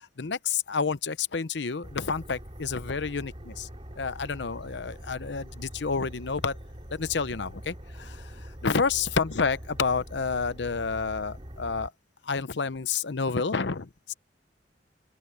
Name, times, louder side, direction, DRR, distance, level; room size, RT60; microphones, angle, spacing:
voice 1, 0.2-3.7 4.0-6.6 6.9-8.2 8.6-11.9 12.3-14.1, left 5 dB, 80° left, 0.8 m, -29 dB
sound 1, 1.8-11.9, equal, 35° right, 3.2 m, -43 dB
open air
head